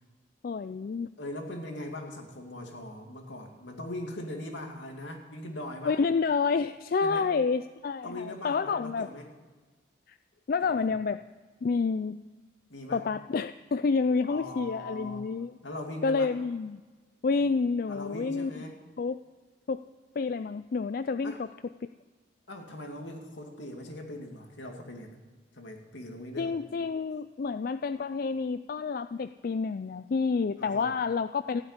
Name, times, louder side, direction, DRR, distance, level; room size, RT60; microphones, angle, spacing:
voice 1, 0.4-1.1 5.8-9.1 10.1-10.2 10.5-11.2 11.6-12.2 12.9-15.5 16.0-16.8 17.2-18.5 19.0-19.2 19.7-19.8 20.2-21.5 26.4-31.6, left 4 dB, 50° left, 12 dB, 0.3 m, -29 dB
voice 2, 1.2-6.0 7.0-7.3 8.0-9.3 10.6-10.9 12.7-13.1 14.3-15.3 15.6-16.3 17.9-18.8 21.2-21.4 22.5-25.2 25.5-26.5 30.6-30.9, left 1 dB, 75° left, 3 dB, 2.4 m, -40 dB
15.0 x 8.1 x 9.7 m, 1.3 s
head